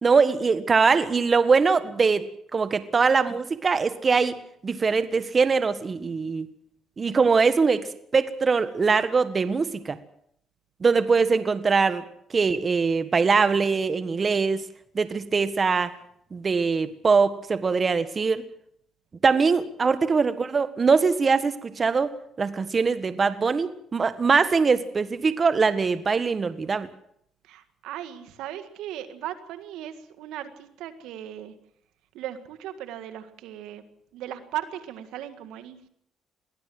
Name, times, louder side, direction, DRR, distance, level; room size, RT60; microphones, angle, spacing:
voice 1, 0.0-4.4 4.6-6.5 7.0-7.9 8.1-10.0 10.8-12.0 12.3-14.6 14.9-15.9 16.3-18.4 19.2-26.9, right 5 dB, 35° right, 12 dB, 1.5 m, -22 dB
voice 2, 27.5-31.5 32.1-33.8 34.1-35.9, right 11 dB, 90° right, 9 dB, 1.8 m, -37 dB
22.5 x 16.0 x 7.8 m, 0.68 s
cardioid pair, 90°, 0 cm